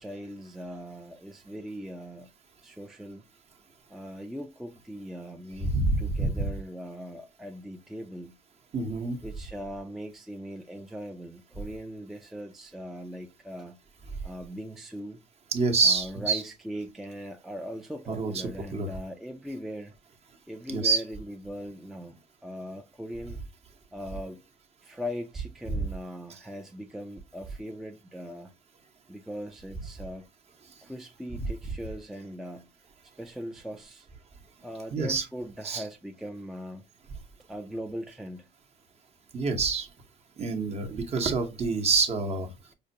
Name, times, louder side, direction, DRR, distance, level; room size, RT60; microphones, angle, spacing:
voice 1, 0.0-2.3 2.6-3.2 3.9-8.3 9.2-13.8 14.2-15.2 15.8-19.9 20.5-23.4 23.9-24.4 24.8-28.5 29.1-30.2 30.8-32.7 33.2-34.1 34.6-36.8 37.5-38.5, equal, ahead, 0.4 m, -40 dB
voice 2, 5.6-6.5 8.7-9.2 15.5-16.4 18.1-18.3 18.7-18.9 20.7-21.0 25.7-25.8 34.9-35.2 35.6-35.8 39.3-39.9 40.4-42.5, right 4 dB, 40° right, 0.8 m, -26 dB
4.9 x 2.1 x 2.7 m
cardioid pair, 110°, 17 cm